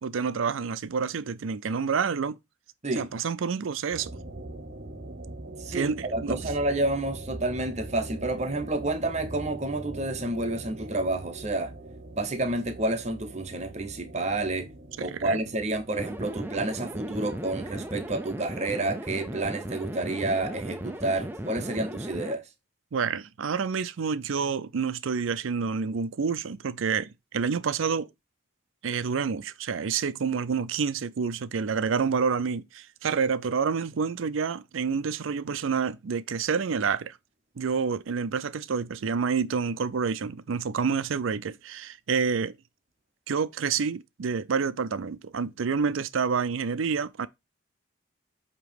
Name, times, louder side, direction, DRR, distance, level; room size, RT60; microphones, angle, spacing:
voice 1, 0.0-2.4 3.0-4.1 5.7-6.4 15.0-15.4 22.9-28.1 28.8-37.2 37.6-42.5 43.3-47.3, right 5 dB, 80° right, 0.5 m, -28 dB
sound 1, 3.9-18.2, right 2 dB, 50° right, 1.1 m, -42 dB
voice 2, 5.6-11.7 12.1-14.7 15.0-22.4, right 2 dB, 35° right, 0.9 m, -29 dB
sound 2, 16.0-22.3, right 1 dB, 10° right, 0.6 m, -36 dB
7.8 x 3.0 x 5.1 m
head